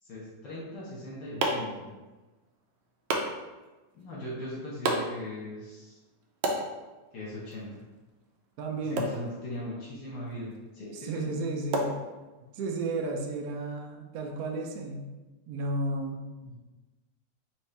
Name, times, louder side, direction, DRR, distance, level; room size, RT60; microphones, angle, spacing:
voice 1, 0.0-1.9 3.9-6.0 7.1-7.8 8.8-11.3 16.4-16.5, left 1 dB, 70° left, -6 dB, 1.7 m, -39 dB
sound 1, 0.7-12.7, right 1 dB, 85° right, 1.4 m, -37 dB
voice 2, 8.6-9.1 11.0-12.0 12.5-15.1 15.5-16.3, right 2 dB, 70° right, 2 dB, 0.9 m, -33 dB
4.4 x 3.1 x 3.3 m, 1.2 s
omnidirectional pair, 2.0 m